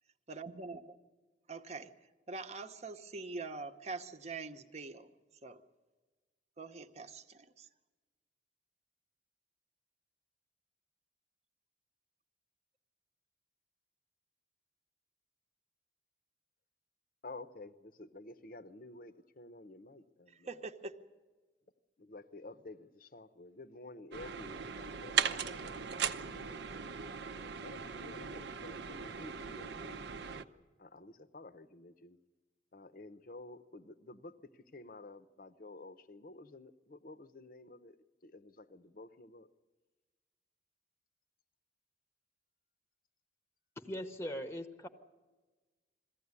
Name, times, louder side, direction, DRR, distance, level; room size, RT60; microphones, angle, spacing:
voice 1, 0.3-0.8 1.5-1.9 2.3-5.1 5.4-5.6 6.6-7.7 20.3-21.0, right 3 dB, 35° right, 8 dB, 0.9 m, -44 dB
voice 2, 17.2-20.6 22.0-26.7 27.4-30.1 30.8-32.2 32.7-38.0 38.2-39.5, left 2 dB, 50° left, 13 dB, 0.7 m, -51 dB
sound 1, 24.1-30.4, right 7 dB, 65° right, 0.7 m, -38 dB
voice 3, 43.8-44.9, equal, 15° left, 8 dB, 0.9 m, -40 dB
21.5 x 15.5 x 9.6 m, 1.3 s
head